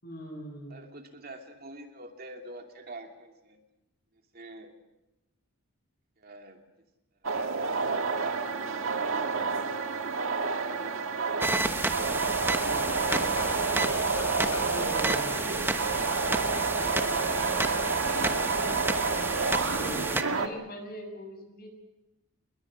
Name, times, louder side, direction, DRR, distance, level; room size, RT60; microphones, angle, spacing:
voice 1, 0.0-0.8 12.6-12.8 14.6-15.5 19.7-21.7, right 1 dB, 45° left, 4 dB, 7.2 m, -41 dB
voice 2, 0.7-3.6 4.3-4.7 6.2-6.6 7.2-9.6 10.6-12.0, right 2 dB, 45° right, 4 dB, 2.7 m, -47 dB
sound 1, 7.2-20.5, right 4 dB, 65° right, 1.8 m, -29 dB
sound 2, 11.4-20.2, right 2 dB, 10° right, 1.2 m, -31 dB
sound 3, 13.1-14.7, left 4 dB, 80° left, 1.4 m, -41 dB
29.0 x 21.5 x 6.4 m, 0.98 s
head